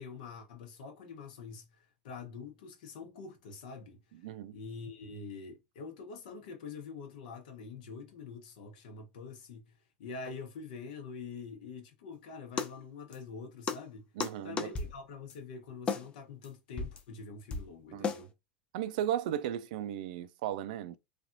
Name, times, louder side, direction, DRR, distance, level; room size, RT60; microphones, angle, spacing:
voice 1, 0.0-4.0 4.5-14.1 14.4-18.3, left 5 dB, 80° left, 0.9 m, -45 dB
voice 2, 4.2-4.6 14.2-14.7 17.9-18.1 18.7-21.0, right 11 dB, 75° right, 0.4 m, -35 dB
sound 1, 12.6-12.7 13.1-13.2 13.7-13.8 14.2-14.3 14.6-15.0 15.3-15.4 15.9-16.1 16.4-16.5 16.8-17.0 17.5-17.7 18.0-18.2, left 5 dB, 25° left, 0.4 m, -33 dB
3.3 x 2.4 x 2.6 m
supercardioid pair, 125°, 4 cm